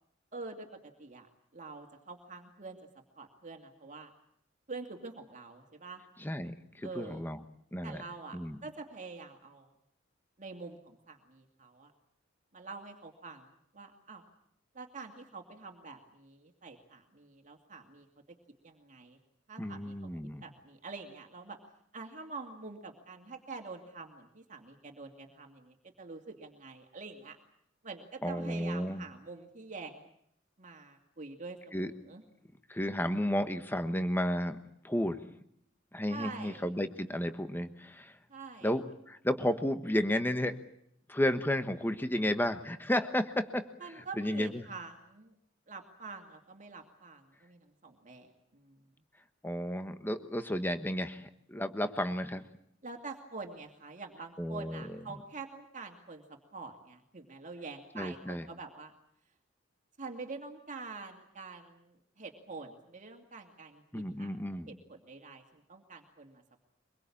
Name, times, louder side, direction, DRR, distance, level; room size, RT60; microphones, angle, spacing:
voice 1, 0.3-1.3 1.5-2.8 3.2-4.1 4.7-6.0 6.8-7.2 7.8-9.7 10.4-11.9 12.5-13.5 13.7-14.2 14.7-18.1 18.6-19.2 19.5-20.1 20.4-21.6 21.9-27.4 27.8-30.1 30.6-32.2 36.1-36.6 38.3-38.7 43.8-45.3 45.7-48.8 52.8-58.9 60.0-64.4 64.7-66.4, right 4 dB, 40° right, 4 dB, 2.5 m, -46 dB
voice 2, 6.2-7.4 7.7-8.0 8.3-8.6 19.6-20.4 28.2-29.0 31.7-31.9 32.7-34.6 34.8-35.2 35.9-38.1 38.6-40.6 41.1-43.7 44.2-44.7 49.4-52.4 54.4-55.0 57.9-58.4 63.9-64.7, left 1 dB, 10° left, 9 dB, 1.3 m, -32 dB
24.5 x 22.5 x 8.6 m, 0.71 s
head